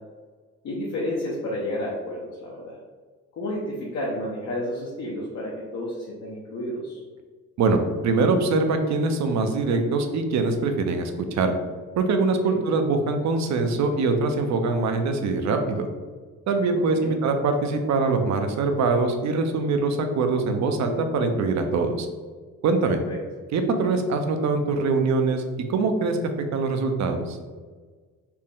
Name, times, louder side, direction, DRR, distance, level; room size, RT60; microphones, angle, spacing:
voice 1, 0.6-2.8 3.3-7.0 12.4-12.6 16.9-17.1 22.8-23.2, left 1 dB, 65° left, -4 dB, 0.8 m, -31 dB
voice 2, 7.6-11.5 12.0-15.9 16.5-22.1 22.6-23.0 23.5-25.4 25.7-27.4, right 3 dB, 65° right, 6 dB, 0.6 m, -23 dB
4.3 x 2.1 x 3.6 m, 1.5 s
cardioid pair, 90°, 30 cm